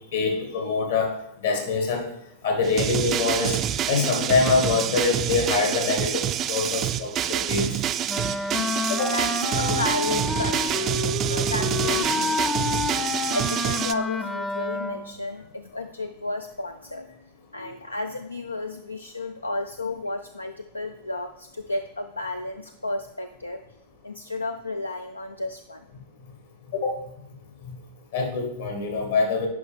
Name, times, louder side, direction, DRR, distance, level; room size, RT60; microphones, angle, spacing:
voice 1, 0.1-1.1 1.4-2.1 2.4-3.6 3.9-6.2 6.5-7.8 8.9-9.1 17.5-17.6 26.7-26.9 28.1-29.5, left 4 dB, 70° left, 3 dB, 1.9 m, -24 dB
sound 1, 2.6-13.9, right 11 dB, 35° right, 0.4 m, -27 dB
Wind instrument woodwind instrument, 8.1-15.2, left 4 dB, 15° left, 0.6 m, -29 dB
voice 2, 8.6-12.8 13.3-23.6 24.0-25.9, left 2 dB, 90° left, 7 dB, 0.4 m, -33 dB
10.5 x 5.2 x 3.5 m, 0.77 s
figure-of-eight pair, 95°, 0 cm